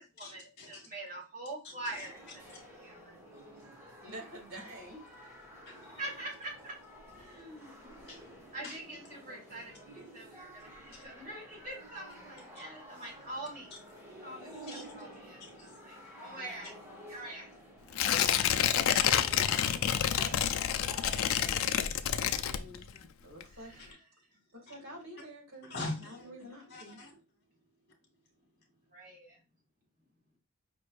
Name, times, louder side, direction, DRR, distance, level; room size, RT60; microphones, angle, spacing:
voice 1, 0.0-2.5 2.7-3.2 6.0-6.7 7.1-8.0 8.5-13.7 14.2-16.7 17.1-17.5 23.5-24.0 28.9-29.4, right 1 dB, 40° right, 2.4 m, -45 dB
sound 1, 1.8-21.6, equal, 10° right, 1.9 m, -52 dB
voice 2, 4.0-5.1 21.2-21.6 22.3-23.8 24.5-27.0, right 1 dB, 90° right, 2.1 m, -49 dB
voice 3, 5.7-6.0 7.9-8.7 10.9-11.0 14.7-15.0 15.5-15.7 22.7-23.0 25.7-26.3 26.7-27.1, left 2 dB, 50° left, 1.5 m, -44 dB
Tearing, 17.9-23.1 23.4-23.5, left 9 dB, 65° left, 0.3 m, -28 dB
5.2 x 3.2 x 2.5 m
head